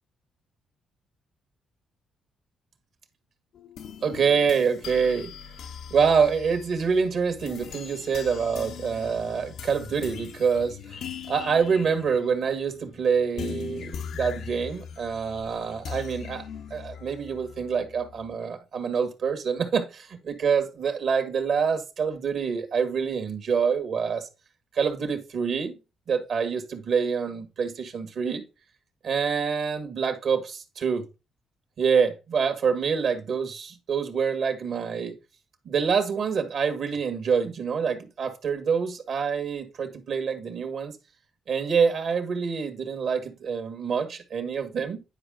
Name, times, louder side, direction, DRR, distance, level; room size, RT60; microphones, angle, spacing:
sound 1, 3.5-18.3, left 7 dB, 70° left, 0.7 m, -41 dB
voice 1, 4.0-5.3 5.9-11.0 11.3-16.5 16.7-24.3 24.7-25.8 26.1-28.4 29.0-31.1 31.8-35.2 35.7-40.9 41.5-45.0, right 6 dB, 65° right, 1.7 m, -26 dB
10.0 x 4.7 x 3.8 m
cardioid pair, 90°, 0 cm